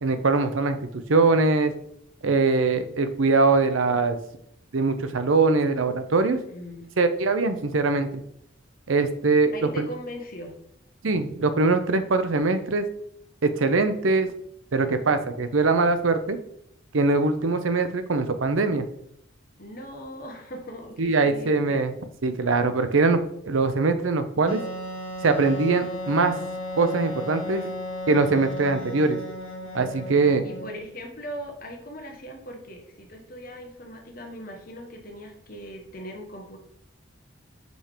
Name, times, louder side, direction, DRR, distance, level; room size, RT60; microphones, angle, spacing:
voice 1, 0.0-1.7 2.2-4.2 4.7-6.4 7.0-8.2 8.9-9.9 11.0-12.9 13.4-14.3 14.7-16.4 16.9-18.9 21.0-21.9 22.2-24.6 25.2-26.3 26.8-27.6 28.1-29.2 29.7-30.4, right 3 dB, 85° right, 9 dB, 0.7 m, -22 dB
voice 2, 6.5-6.9 9.5-10.6 15.0-15.3 19.6-21.9 27.4-27.7 29.6-29.7 30.4-36.6, equal, 45° left, 2 dB, 1.3 m, -40 dB
Wind instrument woodwind instrument, 24.5-30.9, left 1 dB, 85° left, 1.5 m, -35 dB
5.4 x 4.4 x 5.0 m, 0.72 s
head